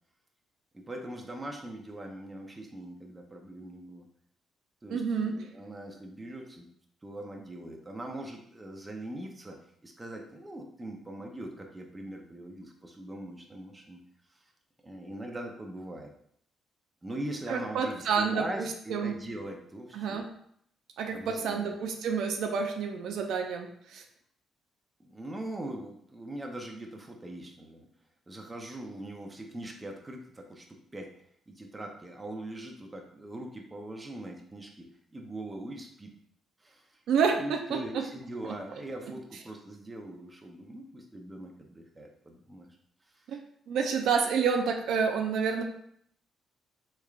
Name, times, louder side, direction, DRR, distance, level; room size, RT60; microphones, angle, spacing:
voice 1, 0.7-4.1 4.8-6.7 7.0-14.0 14.8-16.1 17.0-20.2 21.1-21.7 25.0-27.9 28.3-31.1 31.5-36.2 36.6-37.0 37.3-42.8 43.1-43.4, right 1 dB, 20° right, 2 dB, 0.6 m, -41 dB
voice 2, 4.9-5.4 17.5-19.1 19.9-20.3 21.0-24.0 37.1-38.0 38.4-38.5 43.3-43.4 43.7-45.6, right 6 dB, 80° right, 4 dB, 0.4 m, -29 dB
3.5 x 3.2 x 2.4 m, 0.69 s
cardioid pair, 90°, 0 cm